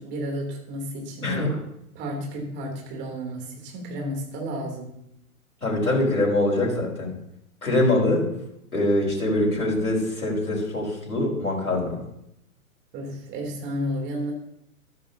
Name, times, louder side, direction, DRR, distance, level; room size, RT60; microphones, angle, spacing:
voice 1, 0.0-1.4 1.9-4.9 12.9-14.3, equal, 25° right, 1 dB, 3.2 m, -32 dB
voice 2, 1.2-1.6 5.6-7.1 7.6-8.2 8.7-12.0, left 1 dB, 75° left, -2 dB, 4.7 m, -23 dB
13.5 x 13.0 x 2.8 m, 0.77 s
figure-of-eight pair, 115°, 44 cm